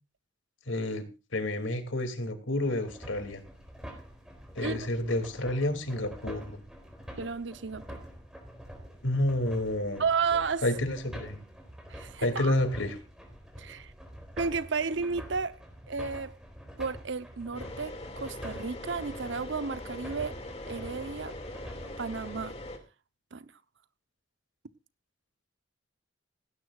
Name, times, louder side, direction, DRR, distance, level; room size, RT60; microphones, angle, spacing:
voice 1, 0.7-1.0 1.3-3.4 4.6-6.6 9.0-10.0 10.6-11.4 12.2-13.0, left 1 dB, 90° left, 2.7 m, -29 dB
sound 1, 2.8-22.4, equal, 5° right, 4.2 m, -46 dB
voice 2, 7.2-7.8 10.0-10.6 11.9-12.5 13.6-13.9 14.4-15.6 15.9-16.4 16.8-20.4 20.7-21.3 22.0-22.6 23.3-23.5, right 5 dB, 75° right, 0.9 m, -32 dB
sound 2, 17.5-22.8, left 1 dB, 35° left, 2.4 m, -42 dB
18.0 x 17.0 x 2.5 m
head